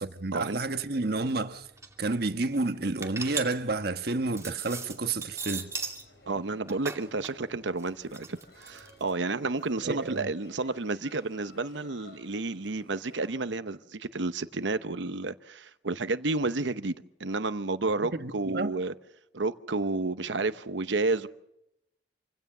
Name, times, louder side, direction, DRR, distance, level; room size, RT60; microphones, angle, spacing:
voice 1, 0.0-1.7 2.0-5.7 9.8-10.3 18.2-18.7, right 3 dB, 60° right, 1.3 m, -30 dB
sound 1, 1.3-1.4 1.6-2.0 2.4-6.1 6.4-9.1, right 4 dB, 15° right, 2.5 m, -38 dB
sound 2, 5.3-13.4, left 2 dB, 60° left, 5.9 m, -56 dB
voice 2, 6.3-18.9 19.3-21.3, right 3 dB, 85° right, 0.9 m, -31 dB
27.5 x 16.5 x 6.7 m
head